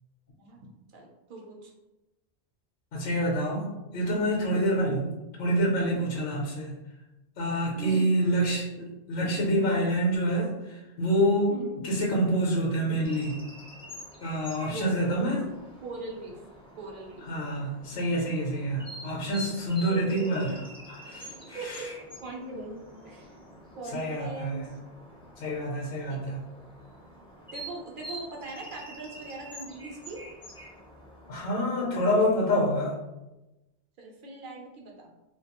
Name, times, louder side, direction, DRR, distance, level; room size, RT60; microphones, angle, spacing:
voice 1, 0.4-1.7 7.8-8.1 11.5-11.8 14.6-15.5 15.8-16.4 16.8-17.3 19.9-20.9 21.5-21.9 22.2-23.3 23.8-24.8 26.1-26.2 26.5-26.6 27.5-30.2 34.0-35.1, right 2 dB, 60° right, 0 dB, 0.6 m, -41 dB
voice 2, 2.9-5.1 5.4-6.8 7.4-11.6 11.8-13.4 14.2-15.4 17.3-20.6 21.0-21.9 23.9-24.7 25.4-26.4 31.3-32.9, equal, 65° left, -2 dB, 0.8 m, -27 dB
sound 1, 13.0-31.5, equal, 5° left, 0.4 m, -46 dB
2.3 x 2.2 x 2.8 m, 1.0 s
omnidirectional pair, 1.0 m